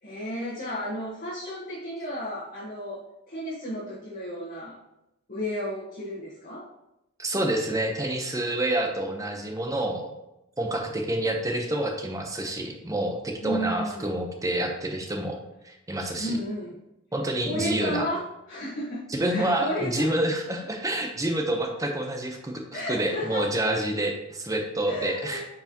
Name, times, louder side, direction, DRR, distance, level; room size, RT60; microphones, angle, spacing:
voice 1, 0.0-4.8 5.3-6.7 13.4-14.0 16.2-16.8 17.4-20.1 22.7-23.6 23.9-24.1 24.8-25.4, equal, 40° left, -7 dB, 1.4 m, -33 dB
voice 2, 7.2-10.2 10.6-16.4 17.1-18.1 19.1-25.4, right 1 dB, 15° right, 3 dB, 0.9 m, -28 dB
8.8 x 4.6 x 3.0 m, 0.90 s
head